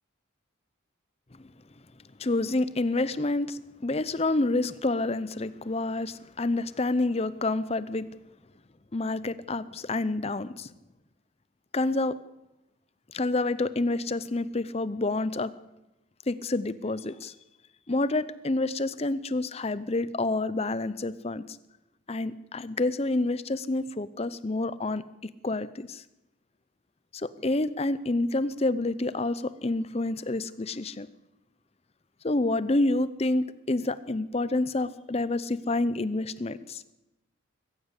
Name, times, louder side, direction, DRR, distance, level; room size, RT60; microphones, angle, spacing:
voice 1, 2.2-8.1 8.9-10.7 11.7-12.2 13.1-15.5 16.3-17.3 17.9-21.6 22.1-26.0 27.1-31.1 32.2-36.8, left 2 dB, 30° left, 16 dB, 0.6 m, -28 dB
22.0 x 14.5 x 8.3 m, 0.95 s
head